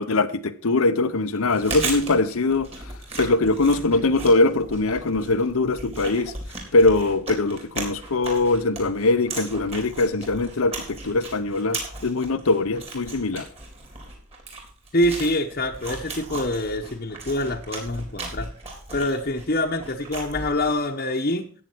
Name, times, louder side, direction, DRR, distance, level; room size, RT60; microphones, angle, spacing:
voice 1, 0.0-2.7 3.2-6.3 6.7-13.5, left 2 dB, 85° left, 0.8 m, -22 dB
Chewing mastication, 1.3-20.9, right 3 dB, 30° right, 3.9 m, -36 dB
voice 2, 14.9-18.5 18.9-21.5, left 1 dB, 45° left, 1.0 m, -25 dB
14.0 x 9.0 x 4.5 m
head